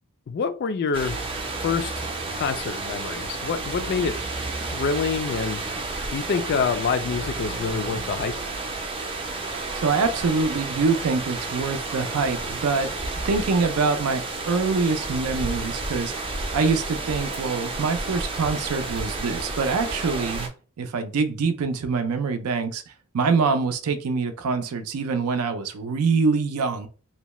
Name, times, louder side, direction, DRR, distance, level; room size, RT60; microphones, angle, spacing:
voice 1, 0.3-1.2 1.6-2.1 2.3-4.2 4.7-5.6 6.1-8.3, left 5 dB, 50° left, 0.3 m, -26 dB
sound 1, 0.9-20.5, right 3 dB, 25° right, 0.5 m, -31 dB
voice 2, 9.7-13.0 13.2-16.1 16.5-20.5 20.8-22.8 23.1-26.9, right 4 dB, 80° right, 0.4 m, -24 dB
2.7 x 2.2 x 3.0 m
head